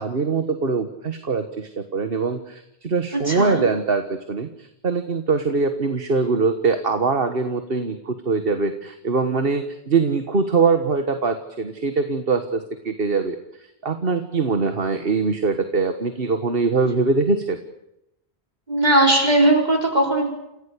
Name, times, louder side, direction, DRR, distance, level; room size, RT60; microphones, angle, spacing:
voice 1, 0.0-17.6, right 4 dB, 65° right, 8 dB, 1.7 m, -23 dB
voice 2, 3.3-3.6 18.7-20.3, right 1 dB, 45° right, 0 dB, 5.0 m, -18 dB
29.0 x 16.0 x 8.4 m, 0.84 s
omnidirectional pair, 1.1 m